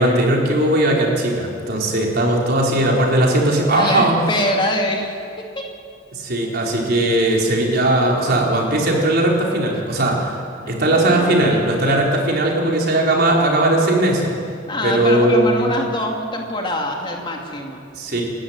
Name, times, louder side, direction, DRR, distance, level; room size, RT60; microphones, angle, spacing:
voice 1, 0.0-4.1 6.1-10.4 10.7-14.3 14.8-15.7 18.0-18.2, right 1 dB, 55° right, -2 dB, 4.6 m, -18 dB
voice 2, 3.7-5.2 5.6-5.7 10.6-11.9 14.6-17.8 18.1-18.2, left 1 dB, 25° left, 1 dB, 2.6 m, -24 dB
29.5 x 13.0 x 9.6 m, 2.3 s
head